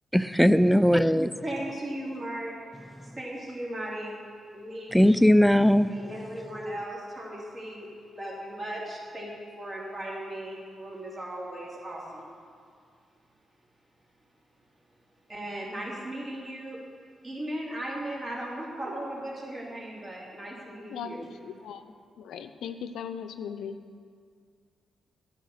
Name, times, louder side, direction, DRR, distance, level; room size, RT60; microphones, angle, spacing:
voice 1, 0.1-1.3 4.9-5.9, equal, ahead, 14 dB, 0.4 m, -19 dB
voice 2, 1.4-2.5 3.0-4.1 4.5-4.9 5.9-12.3 15.3-16.8 17.2-21.5, right 1 dB, 40° right, -4 dB, 3.0 m, -37 dB
voice 3, 20.9-21.9 22.2-23.7, left 7 dB, 80° left, 9 dB, 0.5 m, -38 dB
10.0 x 6.4 x 6.5 m, 2.2 s
supercardioid pair, 50°, 0 cm